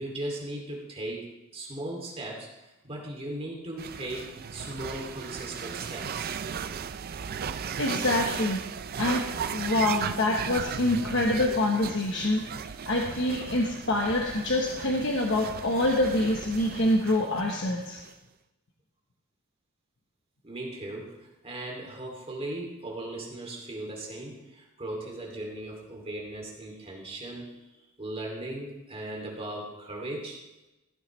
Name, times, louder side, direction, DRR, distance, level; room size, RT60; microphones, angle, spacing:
voice 1, 0.0-6.3 20.4-27.6 28.0-30.4, right 1 dB, 30° right, -1 dB, 2.6 m, -38 dB
sound 1, 3.8-18.1, right 7 dB, 45° right, 0.4 m, -36 dB
voice 2, 7.8-8.6 9.0-9.2 9.5-18.0, left 1 dB, 60° left, 0 dB, 1.1 m, -26 dB
15.5 x 8.9 x 3.2 m, 1.0 s
head